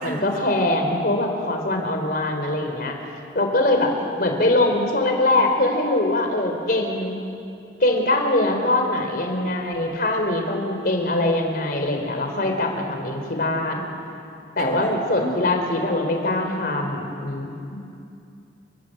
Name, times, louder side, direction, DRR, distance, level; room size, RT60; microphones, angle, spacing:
voice 1, 0.0-3.0 3.3-7.2 7.8-13.9 14.6-17.8, left 2 dB, 55° left, 3 dB, 4.0 m, -22 dB
voice 2, 14.6-15.5, right 1 dB, 50° right, 3 dB, 3.8 m, -32 dB
29.5 x 22.0 x 7.8 m, 2.6 s
head